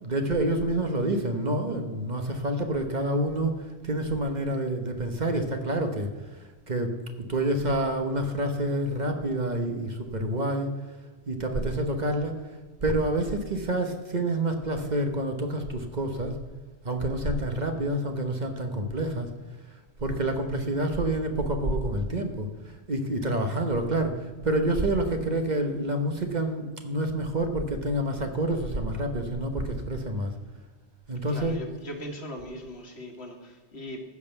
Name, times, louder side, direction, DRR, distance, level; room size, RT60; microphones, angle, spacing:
voice 1, 0.0-7.0 7.3-10.7 11.3-12.4 12.8-16.4 16.8-19.3 20.0-30.3 31.1-31.6, right 1 dB, 45° right, 5 dB, 1.1 m, -28 dB
voice 2, 31.3-34.0, equal, 70° left, 3 dB, 1.8 m, -40 dB
14.5 x 5.4 x 7.0 m, 1.3 s
omnidirectional pair, 1.1 m